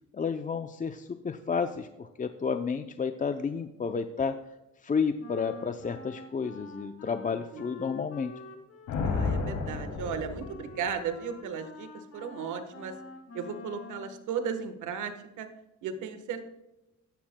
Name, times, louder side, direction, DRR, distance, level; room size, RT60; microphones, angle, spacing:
voice 1, 0.1-4.4 4.8-8.3, left 5 dB, 25° left, 8 dB, 0.5 m, -31 dB
Wind instrument woodwind instrument, 5.2-14.2, left 4 dB, 55° left, 1.7 m, -47 dB
voice 2, 7.3-7.6 9.0-11.9 12.1-12.9 13.3-15.5 15.8-16.5, right 7 dB, 80° right, 8 dB, 1.3 m, -35 dB
Thunder, 8.9-11.1, left 4 dB, 85° left, 2.7 m, -32 dB
15.0 x 11.5 x 2.2 m, 0.98 s
cardioid pair, 90°, 30 cm